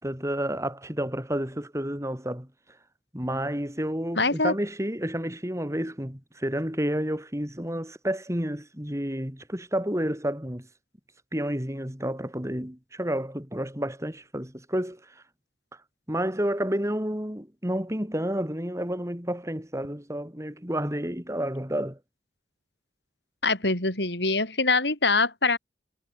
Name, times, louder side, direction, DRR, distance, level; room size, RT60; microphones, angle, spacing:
voice 1, 0.0-2.5 3.1-10.7 11.3-15.0 16.1-22.0, equal, 15° right, 4.8 m, -30 dB
voice 2, 4.2-4.5 23.4-25.6, left 3 dB, 75° left, 7.6 m, -24 dB
head